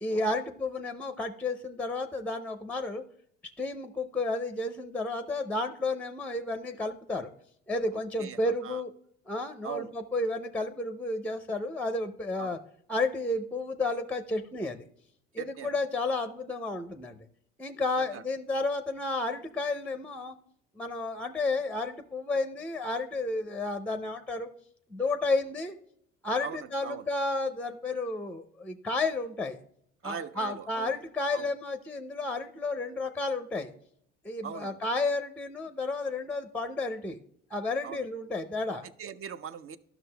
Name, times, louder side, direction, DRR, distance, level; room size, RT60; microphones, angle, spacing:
voice 1, 0.0-3.0 3.6-7.3 7.7-8.9 9.3-12.6 12.9-14.8 15.3-17.2 17.6-20.4 20.8-24.5 24.9-25.8 26.2-29.6 30.0-33.7 34.2-37.2 37.5-38.8, left 2 dB, 5° left, 9 dB, 0.5 m, -32 dB
voice 2, 7.9-8.8 9.6-9.9 12.4-12.6 15.4-15.7 18.0-18.2 26.4-27.1 30.0-30.9 31.3-31.5 34.4-34.8 37.8-38.1 39.0-39.8, right 8 dB, 45° right, 13 dB, 0.6 m, -41 dB
12.0 x 6.0 x 2.2 m, 0.68 s
hypercardioid pair, 70°, 30 cm